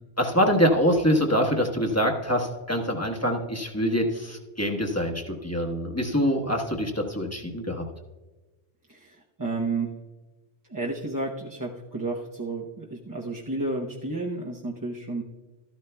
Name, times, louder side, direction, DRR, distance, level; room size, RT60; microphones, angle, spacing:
voice 1, 0.2-7.8, equal, 15° left, 1 dB, 1.2 m, -25 dB
voice 2, 8.9-9.9 10.7-15.2, right 3 dB, 20° right, -3 dB, 0.8 m, -31 dB
13.5 x 12.0 x 2.3 m, 1.2 s
omnidirectional pair, 1.1 m